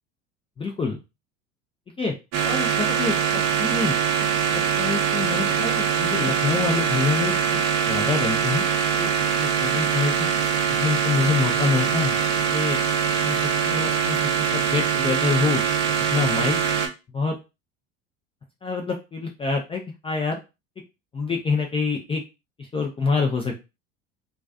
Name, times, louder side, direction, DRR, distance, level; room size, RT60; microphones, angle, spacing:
voice 1, 0.6-1.0 2.0-2.2 2.4-4.0 4.5-7.6 7.9-8.6 9.0-9.1 9.4-10.3 10.8-12.2 12.5-12.8 13.2-13.4 13.6-14.2 14.5-15.6 16.1-16.6 17.1-17.4 18.6-20.4 21.1-22.2 22.6-23.6, left 4 dB, 15° left, 2 dB, 0.4 m, -26 dB
sound 1, 2.3-16.9, right 7 dB, 50° right, 0.6 m, -23 dB
2.4 x 2.3 x 2.3 m, 0.27 s
hypercardioid pair, 75°, 37 cm